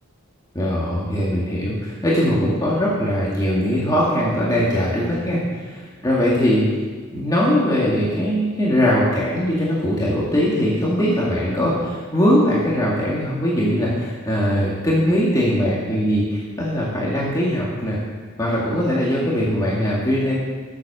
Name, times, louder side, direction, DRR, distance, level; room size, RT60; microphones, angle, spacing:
voice 1, 0.5-6.6 7.1-18.0 18.4-20.4, equal, 15° left, -7 dB, 2.1 m, -21 dB
14.0 x 7.5 x 6.8 m, 1.5 s
head